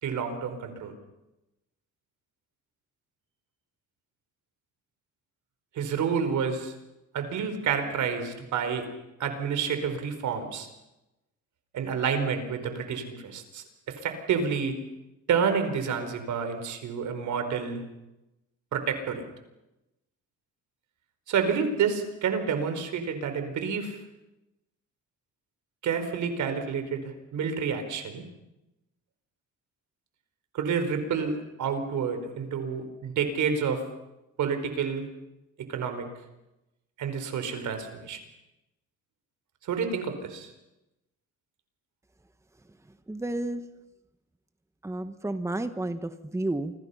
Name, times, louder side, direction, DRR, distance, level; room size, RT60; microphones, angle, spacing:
voice 1, 0.0-0.9 5.7-6.7 7.1-8.9 9.2-10.7 11.7-14.8 15.3-17.8 18.7-19.3 21.3-24.0 25.8-28.2 30.5-33.8 34.4-35.1 35.7-36.1 37.0-38.2 39.7-40.5, right 6 dB, 75° right, 8 dB, 4.6 m, -29 dB
voice 2, 43.1-43.6 44.8-46.7, right 1 dB, 10° right, 9 dB, 1.4 m, -31 dB
29.5 x 25.0 x 5.8 m, 0.95 s
cardioid pair, 90°, 30 cm